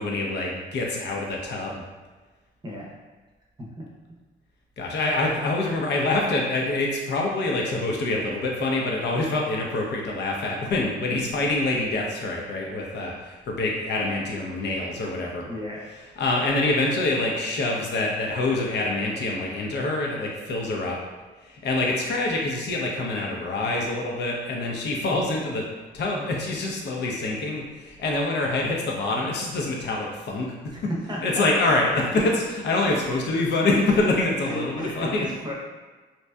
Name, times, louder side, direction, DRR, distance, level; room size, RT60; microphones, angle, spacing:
voice 1, 0.0-1.8 4.8-15.4 16.2-21.0 21.4-25.6 25.9-30.5 31.2-35.2, left 2 dB, 60° left, -1 dB, 0.6 m, -25 dB
voice 2, 2.6-2.9 3.8-3.9 5.4-5.5 15.5-15.9 30.7-31.5 32.1-32.3 34.4-35.5, equal, 20° right, -3 dB, 0.7 m, -33 dB
2.7 x 2.2 x 2.2 m, 1.3 s
cardioid pair, 90°, 20 cm